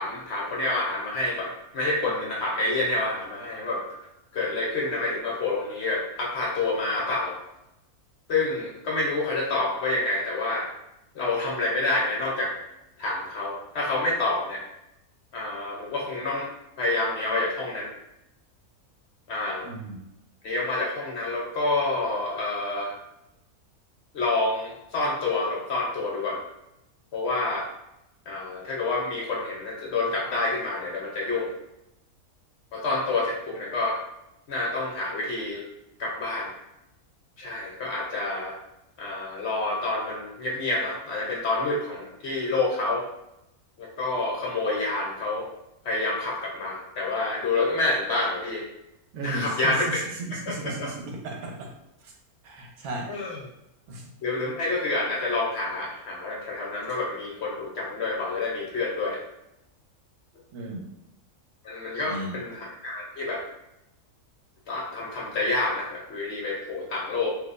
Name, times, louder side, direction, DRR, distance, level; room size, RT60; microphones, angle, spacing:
voice 1, 0.0-4.0 4.3-7.4 8.3-10.7 11.1-12.6 13.0-14.6 15.3-16.5 16.8-17.9 19.3-19.7 20.4-23.0 24.1-26.4 27.1-27.7 28.3-31.5 32.7-34.0 34.5-35.7 36.0-36.5 37.4-38.6 39.0-43.1 43.8-45.5 45.8-48.6 49.2-50.0 50.5-50.9 53.1-53.4 54.2-59.2 61.6-63.4 64.7-67.3, left 2 dB, 60° left, -3 dB, 0.8 m, -28 dB
voice 2, 19.6-20.0 49.1-51.7 52.0-52.1 52.4-53.1 53.9-54.1 60.5-60.9 61.9-62.3, right 2 dB, 85° right, 1 dB, 1.2 m, -35 dB
3.8 x 2.6 x 2.5 m, 0.88 s
omnidirectional pair, 1.6 m